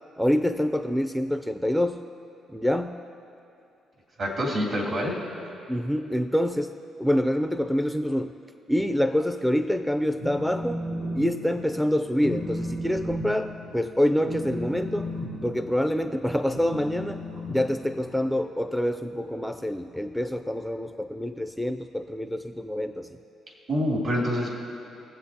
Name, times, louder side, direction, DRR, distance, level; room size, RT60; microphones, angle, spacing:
voice 1, 0.2-2.0 2.5-3.0 5.7-6.7 7.0-8.3 8.7-10.8 11.1-15.1 15.4-17.2 17.5-23.2, equal, ahead, 8 dB, 0.4 m, -26 dB
voice 2, 4.2-5.1 23.7-24.5, equal, 55° right, -2 dB, 2.9 m, -26 dB
Telephone, 10.2-11.2 11.5-11.8 12.2-18.3, left 1 dB, 85° right, 2.3 m, -34 dB
23.0 x 7.8 x 2.8 m, 2.7 s
cardioid pair, 90°, 0 cm